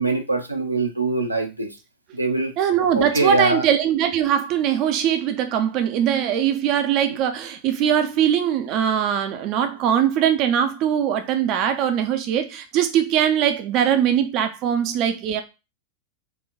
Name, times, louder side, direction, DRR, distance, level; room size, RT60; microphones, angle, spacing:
voice 1, 0.0-1.8 2.1-2.5 2.9-3.6 7.1-7.2, right 3 dB, 85° right, 0.7 m, -23 dB
voice 2, 2.6-15.4, right 9 dB, 40° right, 0.5 m, -21 dB
4.0 x 2.3 x 3.9 m
figure-of-eight pair, 90°, 0 cm